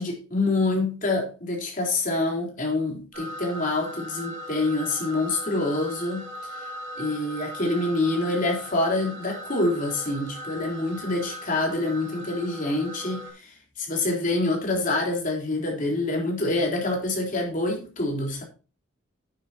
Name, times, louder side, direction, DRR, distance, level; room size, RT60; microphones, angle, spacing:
voice 1, 0.0-6.2 7.0-13.5 13.8-18.4, left 2 dB, 40° left, 3.9 m, -26 dB
sound 1, 3.1-13.3, equal, 65° right, 4.1 m, -39 dB
11.0 x 9.9 x 2.9 m
head